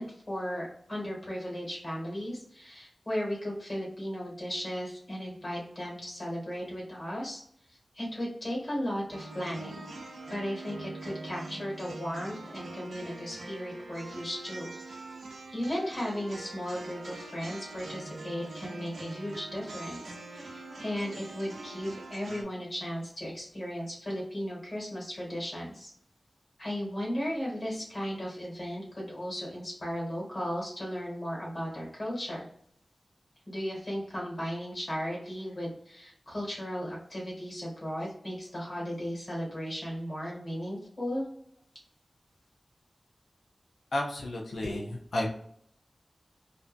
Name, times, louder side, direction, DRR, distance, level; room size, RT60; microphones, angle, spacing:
voice 1, 0.0-7.4 7.7-9.9 10.3-15.0 15.5-25.9 26.6-32.4 33.5-41.2, equal, 45° left, -4 dB, 1.5 m, -36 dB
sound 1, 9.1-22.4, right 2 dB, 90° right, 0.5 m, -43 dB
voice 2, 43.9-45.3, left 1 dB, 85° left, 0 dB, 0.5 m, -32 dB
2.5 x 2.2 x 2.4 m, 0.66 s
wide cardioid pair, 80°, 0 cm